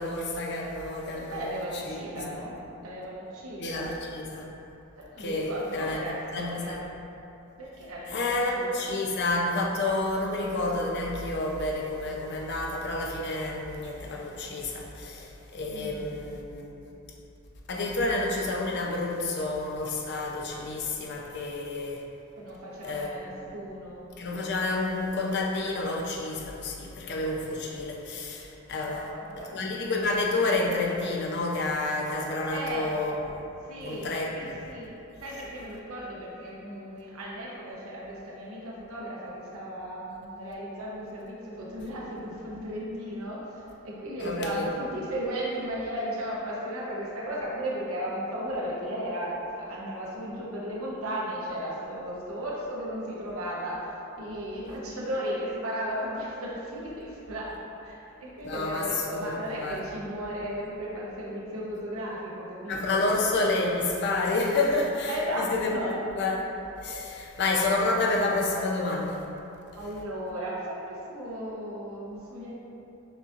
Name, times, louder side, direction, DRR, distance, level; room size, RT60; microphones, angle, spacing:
voice 1, 0.0-1.5 1.9-2.3 3.6-4.5 5.2-6.0 6.3-6.8 8.1-16.9 17.7-22.0 22.8-23.1 24.2-29.1 29.4-33.4 33.8-34.7 44.2-44.6 58.4-59.8 62.7-65.7 66.2-66.4 66.8-69.2, left 2 dB, 50° left, -1 dB, 0.5 m, -29 dB
voice 2, 1.1-2.5 2.8-3.9 5.0-6.8 7.6-9.0 15.7-16.2 22.3-24.1 28.8-29.6 32.5-32.9 33.7-34.9 35.2-43.5 43.8-63.0 65.1-65.9 67.0-67.2 69.8-72.5, equal, 80° right, -5 dB, 0.9 m, -35 dB
6.6 x 2.7 x 2.5 m, 2.9 s
head